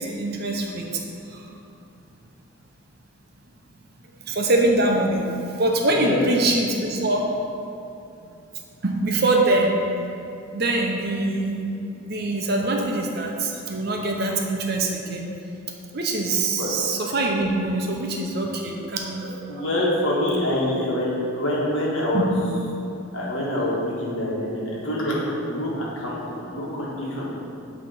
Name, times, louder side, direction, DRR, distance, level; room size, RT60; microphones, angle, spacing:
voice 1, 0.0-1.5 4.3-5.2 5.6-7.3 8.2-8.3 8.8-9.7 10.5-11.6 12.0-15.3 15.9-19.6 22.1-22.3, right 2 dB, 45° right, 0 dB, 0.8 m, -24 dB
voice 2, 19.5-22.3 23.1-27.3, left 1 dB, 65° left, -5 dB, 1.5 m, -26 dB
8.7 x 3.2 x 5.5 m, 2.7 s
head